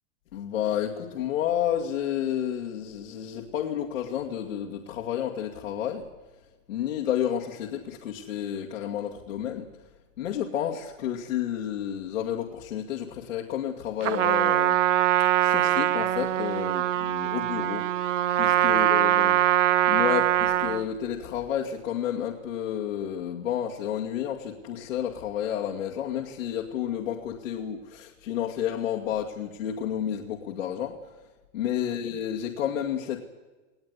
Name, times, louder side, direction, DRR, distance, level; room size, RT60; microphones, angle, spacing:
voice 1, 0.3-6.0 6.7-9.7 10.2-14.8 15.4-17.9 18.4-19.3 19.9-31.0 31.5-33.3, left 10 dB, 85° left, -1 dB, 2.4 m, -31 dB
Trumpet, 14.0-20.9, right 12 dB, 70° right, 1.2 m, -23 dB
19.5 x 18.0 x 9.8 m, 1.2 s
supercardioid pair, 155°, 38 cm